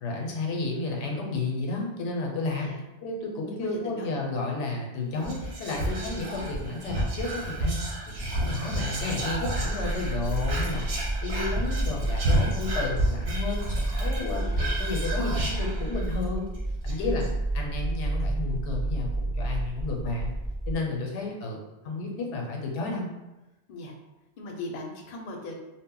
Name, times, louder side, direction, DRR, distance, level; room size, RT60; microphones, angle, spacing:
voice 1, 0.0-2.7 3.0-7.8 8.2-10.9 11.2-16.5 16.8-17.3 17.5-20.3 20.7-23.1, left 3 dB, 85° left, 0 dB, 0.9 m, -32 dB
voice 2, 3.5-4.1 6.0-6.5 14.3-15.0 16.9-17.3 23.7-24.0 24.4-25.5, left 2 dB, 60° left, 1 dB, 0.6 m, -40 dB
Whispering, 5.2-16.2 16.5-16.6 16.9-17.3, right 1 dB, 60° right, 0.7 m, -31 dB
sound 1, 9.5-20.7, right 1 dB, 5° left, 0.5 m, -30 dB
2.1 x 2.0 x 3.7 m, 1.0 s
omnidirectional pair, 1.2 m